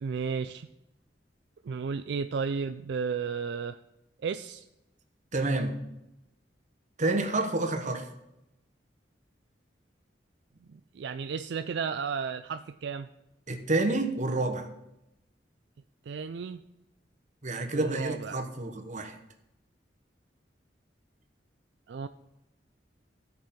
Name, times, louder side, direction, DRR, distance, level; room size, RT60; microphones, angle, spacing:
voice 1, 0.0-0.7 1.6-3.8 4.2-4.7 10.7-13.1 16.1-16.6 17.7-18.4 21.9-22.1, right 5 dB, 70° right, 10 dB, 0.4 m, -33 dB
voice 2, 5.3-5.8 7.0-8.1 13.5-14.7 17.4-19.2, right 2 dB, 45° right, 5 dB, 1.2 m, -29 dB
16.0 x 5.4 x 4.3 m, 0.89 s
head